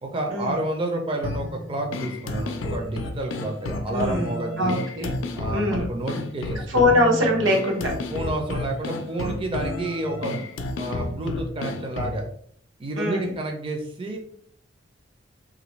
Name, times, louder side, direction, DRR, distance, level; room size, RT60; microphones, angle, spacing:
voice 1, 0.0-4.7 5.3-6.8 8.1-10.4 10.8-12.2 12.8-14.2, right 1 dB, 30° right, 1 dB, 0.4 m, -30 dB
sound 1, 1.2-12.2, left 2 dB, 90° left, 0.4 m, -31 dB
voice 2, 3.9-4.3 4.6-5.1 5.5-5.9 6.7-7.9 13.0-13.3, left 1 dB, 85° right, 1 dB, 0.9 m, -22 dB
3.0 x 2.5 x 3.0 m, 0.62 s
head